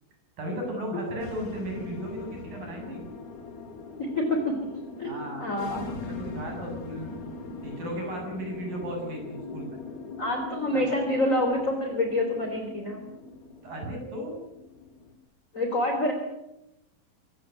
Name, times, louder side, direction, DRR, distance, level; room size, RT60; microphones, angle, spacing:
voice 1, 0.4-3.0 5.0-5.8 6.1-7.2 7.6-9.8 13.6-14.3, right 1 dB, 65° right, 2 dB, 8.9 m, -35 dB
sound 1, 1.2-15.1, left 3 dB, 80° left, 4.3 m, -41 dB
voice 2, 4.0-4.6 5.0-5.1 5.4-6.0 10.2-13.1 15.5-16.1, left 1 dB, 20° left, 3 dB, 3.2 m, -27 dB
24.0 x 17.0 x 9.2 m, 0.91 s
omnidirectional pair, 4.2 m